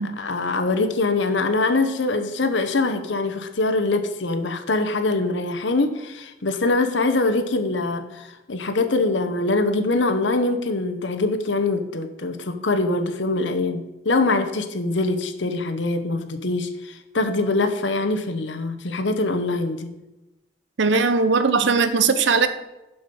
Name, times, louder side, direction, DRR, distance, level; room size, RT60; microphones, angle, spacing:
voice 1, 0.0-19.9, left 2 dB, 85° left, 8 dB, 1.0 m, -23 dB
voice 2, 20.8-22.5, right 4 dB, 80° right, 10 dB, 0.8 m, -19 dB
7.0 x 5.7 x 6.9 m, 0.99 s
head